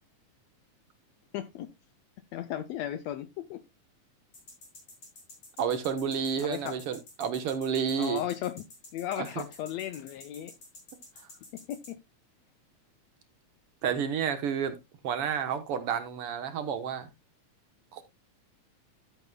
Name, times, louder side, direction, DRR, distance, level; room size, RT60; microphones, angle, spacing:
voice 1, 1.3-1.7 2.3-3.6 6.4-6.8 8.0-8.6 8.9-10.5 11.5-12.0, left 11 dB, 75° left, 1.6 m, -35 dB
sound 1, 4.3-11.9, left 2 dB, 50° left, 7.7 m, -49 dB
voice 2, 5.6-8.2 9.2-9.4 13.8-14.8 15.0-17.1 17.9-18.0, right 7 dB, 60° right, 1.7 m, -30 dB
13.5 x 8.1 x 2.2 m
omnidirectional pair, 3.5 m